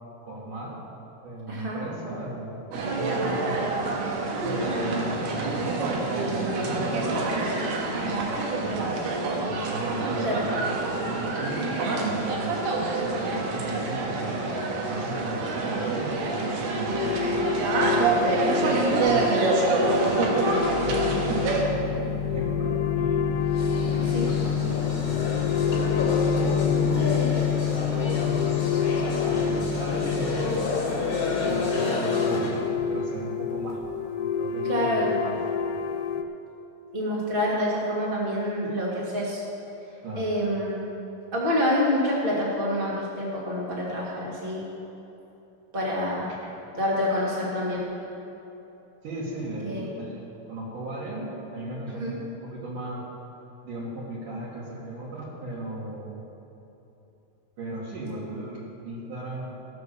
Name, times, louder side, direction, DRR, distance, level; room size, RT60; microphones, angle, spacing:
voice 1, 0.2-0.8 1.2-3.7 4.4-7.2 7.9-9.0 9.4-11.7 12.0-12.6 13.0-17.2 17.7-18.2 18.6-19.2 19.7-28.6 29.2-30.8 31.4-32.6 32.9-33.8 34.2-35.4 40.0-40.3 46.3-46.4 49.0-53.1 53.6-56.2 57.6-59.6, right 1 dB, 60° right, -8 dB, 3.0 m, -36 dB
voice 2, 1.5-1.8 10.2-10.4 24.1-24.3 34.6-35.2 36.9-39.4 40.2-40.8 41.3-44.6 45.7-46.2 46.7-47.9 49.6-49.9 52.0-52.2, left 1 dB, 25° right, -4 dB, 1.2 m, -27 dB
sound 1, 2.7-21.6, right 3 dB, 80° right, 3.3 m, -26 dB
sound 2, 16.9-36.2, left 7 dB, 90° left, 2.6 m, -27 dB
sound 3, 23.5-32.6, left 3 dB, 40° left, 2.2 m, -30 dB
16.5 x 5.9 x 6.9 m, 3.0 s
omnidirectional pair, 4.6 m